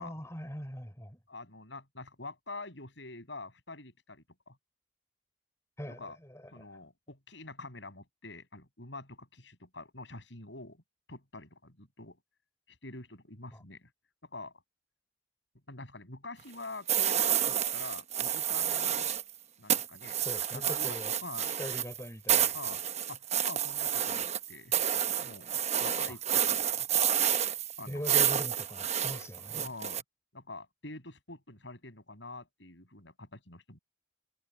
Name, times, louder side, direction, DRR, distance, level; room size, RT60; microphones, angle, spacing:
voice 1, 0.0-1.2 5.8-6.8 13.5-13.6 20.2-21.2 21.5-22.7 26.1-26.2 27.9-29.7, equal, 15° left, 5.7 m, -42 dB
voice 2, 1.3-4.6 5.9-6.2 6.5-10.8 11.1-12.2 12.8-13.9 14.2-14.5 15.7-19.1 19.6-20.2 20.5-21.0 21.2-21.5 22.5-22.8 23.1-24.7 25.2-26.2 26.7-26.9 27.8-28.2 29.5-30.0 30.3-33.8, left 2 dB, 75° left, 7.2 m, -46 dB
sound 1, 16.9-19.3 19.7-30.0, right 9 dB, 35° right, 1.1 m, -29 dB
head